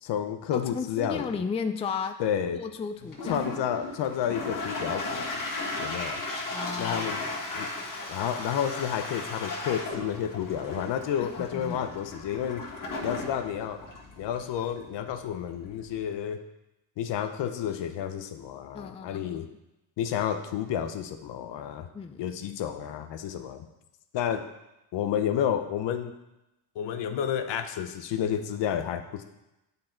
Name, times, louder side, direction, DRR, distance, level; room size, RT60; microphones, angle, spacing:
voice 1, 0.0-1.4 2.2-2.6 3.3-5.4 5.8-6.2 6.8-7.3 7.5-7.7 8.1-12.7 13.0-13.8 14.2-16.4 17.0-19.5 20.0-21.9 22.2-23.6 24.1-24.5 24.9-26.1 26.8-29.2, left 9 dB, 65° left, 9 dB, 0.8 m, -30 dB
voice 2, 0.5-2.2 2.5-3.4 6.5-7.4 11.2-11.8 18.7-19.4 21.9-22.3, left 5 dB, 15° left, 8 dB, 0.3 m, -35 dB
Toilet flush, 3.0-16.1, left 2 dB, 40° left, 1.6 m, -36 dB
8.4 x 4.0 x 4.4 m, 0.94 s
supercardioid pair, 75°, 47 cm